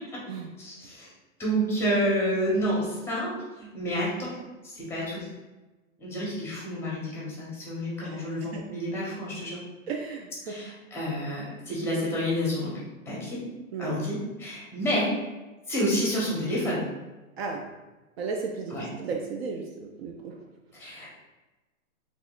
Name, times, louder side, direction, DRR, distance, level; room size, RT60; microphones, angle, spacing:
voice 1, 0.6-1.1 1.4-4.4 4.6-5.3 6.0-9.6 10.4-12.8 13.1-13.4 13.8-15.1 15.7-16.8 18.7-18.9 20.7-21.2, equal, 5° left, -6 dB, 0.8 m, -29 dB
voice 2, 8.0-8.6 9.9-10.7 13.7-14.0 17.4-17.6 18.2-20.4, right 4 dB, 50° right, 1 dB, 0.5 m, -35 dB
3.5 x 3.0 x 2.4 m, 1.1 s
hypercardioid pair, 135°, 41 cm